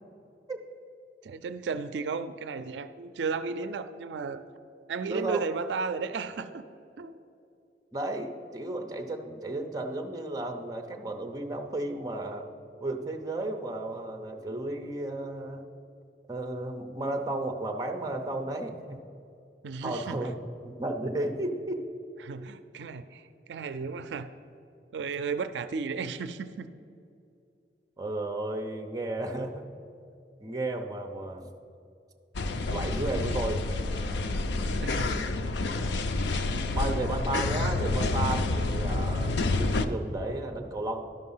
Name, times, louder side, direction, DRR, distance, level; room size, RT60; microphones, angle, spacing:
voice 1, 1.2-4.5 4.9-6.6 7.0-7.2 19.6-20.2 22.2-24.3 24.9-26.7 34.8-35.2, right 5 dB, 80° right, 12 dB, 0.4 m, -34 dB
voice 2, 5.1-5.4 7.9-12.5 12.8-15.6 16.3-19.0 19.8-20.4 20.6-21.9 28.0-29.6 30.4-31.5 32.7-33.6 36.7-41.0, right 2 dB, 20° right, 4 dB, 0.7 m, -33 dB
sound 1, 32.3-39.8, left 2 dB, 80° left, 0.5 m, -28 dB
12.0 x 5.3 x 5.5 m, 2.6 s
head